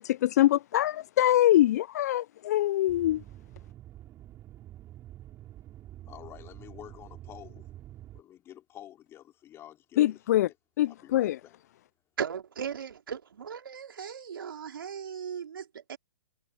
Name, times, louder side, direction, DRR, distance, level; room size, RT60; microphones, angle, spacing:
voice 1, 0.0-3.2 10.0-10.5 10.8-11.4, left 13 dB, 45° left, 0.5 m, -24 dB
sound 1, 2.9-8.2, right 13 dB, 25° right, 6.4 m, -47 dB
voice 2, 6.0-7.7 8.1-10.4 10.9-11.5, left 12 dB, 20° left, 4.7 m, -49 dB
voice 3, 12.2-16.0, right 7 dB, 70° right, 3.0 m, -37 dB
hypercardioid pair, 130°, 12 cm